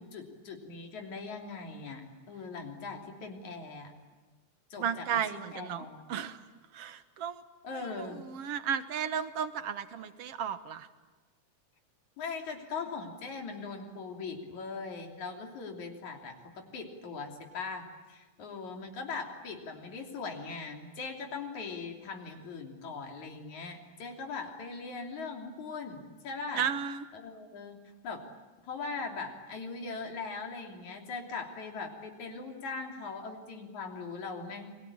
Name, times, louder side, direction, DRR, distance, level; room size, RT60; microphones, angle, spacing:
voice 1, 0.0-3.9 4.7-6.0 7.6-8.2 12.2-26.6 27.1-27.8 28.0-28.2 28.6-34.7, left 4 dB, 75° left, 3 dB, 4.5 m, -40 dB
voice 2, 4.8-6.4 6.7-7.4 8.0-10.9 26.6-27.0, right 8 dB, 60° right, 11 dB, 2.0 m, -34 dB
29.5 x 22.5 x 8.8 m, 1.3 s
omnidirectional pair, 3.4 m